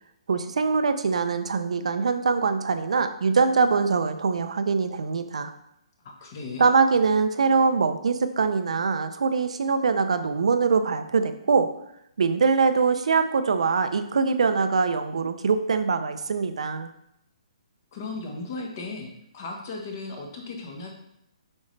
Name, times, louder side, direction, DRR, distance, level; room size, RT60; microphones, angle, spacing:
voice 1, 0.3-5.5 6.6-11.7 12.2-16.9, right 5 dB, 70° right, 9 dB, 0.6 m, -23 dB
voice 2, 6.0-6.7 17.9-19.1 19.3-20.9, left 3 dB, 30° left, 1 dB, 1.3 m, -36 dB
7.3 x 5.4 x 3.3 m, 0.78 s
hypercardioid pair, 170°, 3 cm